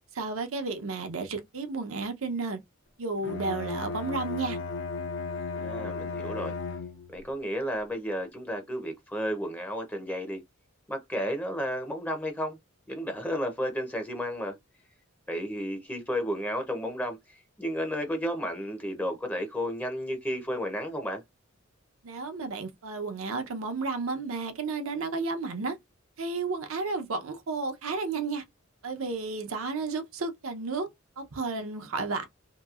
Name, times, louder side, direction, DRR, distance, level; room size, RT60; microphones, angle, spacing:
voice 1, 0.1-2.6 3.0-4.6 22.0-25.8 26.2-28.4 28.8-30.9 31.2-32.3, right 3 dB, 80° right, 0.8 m, -32 dB
Bowed string instrument, 3.2-7.3, left 4 dB, 60° left, 0.7 m, -35 dB
voice 2, 5.5-6.5 7.1-10.4 10.9-12.6 12.9-14.5 15.3-21.2, equal, 10° left, 0.6 m, -32 dB
2.9 x 2.7 x 2.4 m
head